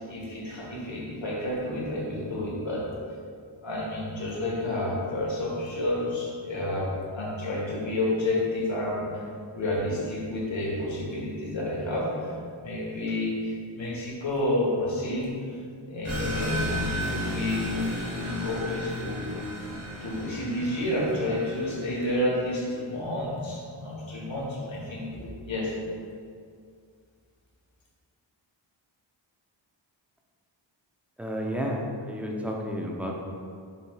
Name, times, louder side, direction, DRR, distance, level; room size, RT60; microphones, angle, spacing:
voice 1, 0.1-2.8 3.6-9.2 9.5-12.3 12.6-15.3 15.9-16.7 17.0-19.4 20.0-25.7, left 1 dB, 70° left, -5 dB, 1.2 m, -30 dB
sound 1, 16.0-22.3, left 1 dB, 80° right, 1.3 m, -33 dB
voice 2, 31.2-33.1, equal, 5° right, -1 dB, 0.5 m, -31 dB
5.5 x 3.1 x 2.3 m, 2.2 s
wide cardioid pair, 50°, 47 cm